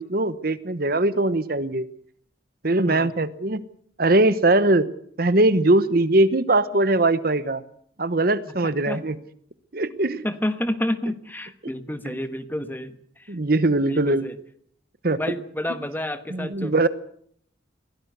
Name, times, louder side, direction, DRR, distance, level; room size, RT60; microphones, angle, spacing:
voice 1, 0.0-1.9 2.6-3.6 4.0-4.9 5.2-7.6 8.0-9.2 9.7-10.2 12.0-12.1 13.3-14.3 15.0-15.2 16.3-16.9, right 2 dB, 50° right, 14 dB, 1.0 m, -21 dB
voice 2, 10.2-13.3 13.8-14.4 15.2-16.9, left 1 dB, 10° left, 10 dB, 1.3 m, -30 dB
23.0 x 17.0 x 8.0 m, 0.64 s
head